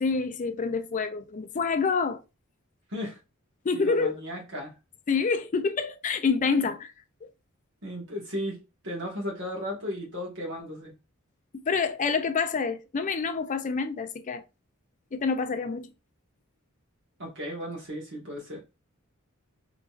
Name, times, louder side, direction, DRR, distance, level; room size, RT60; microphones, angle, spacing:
voice 1, 0.0-2.2 3.6-4.2 5.1-6.9 7.2-7.3 11.6-14.4 15.1-15.9, left 5 dB, 35° left, 0.4 m, -27 dB
voice 2, 3.7-4.7 7.8-10.9 17.2-18.6, equal, 60° right, 1.5 m, -35 dB
3.7 x 3.0 x 2.4 m
head